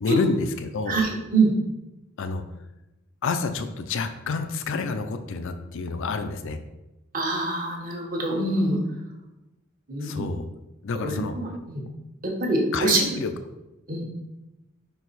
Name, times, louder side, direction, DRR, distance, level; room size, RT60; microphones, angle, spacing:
voice 1, 0.0-1.0 2.2-2.4 3.2-6.6 10.0-10.4 10.8-11.4 12.7-13.3, left 4 dB, 65° left, 8 dB, 0.5 m, -28 dB
voice 2, 0.9-1.5 7.1-8.8 9.9-10.2 11.0-11.8 12.2-13.0 13.9-14.1, right 2 dB, 40° right, 0 dB, 1.2 m, -25 dB
5.4 x 4.6 x 4.1 m, 0.96 s
head